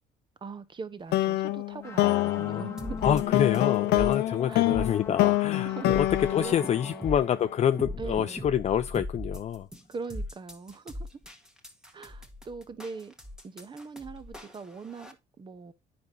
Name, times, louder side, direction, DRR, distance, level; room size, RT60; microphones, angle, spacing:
voice 1, 0.4-3.0 4.5-4.7 5.6-6.0 6.4-6.5 6.8-7.1 8.0-8.5 9.9-11.1 11.9-13.1 13.4-15.7, right 4 dB, 30° right, 1.0 m, -41 dB
sound 1, 1.1-7.5, left 16 dB, 80° left, 0.7 m, -27 dB
sound 2, 1.8-8.7, left 4 dB, 15° left, 1.0 m, -42 dB
voice 2, 2.0-2.7 3.0-6.1 6.3-9.7, left 9 dB, 40° left, 0.5 m, -27 dB
sound 3, 2.8-15.1, left 1 dB, 5° right, 1.5 m, -39 dB
9.6 x 5.3 x 2.8 m
cardioid pair, 110°, 17 cm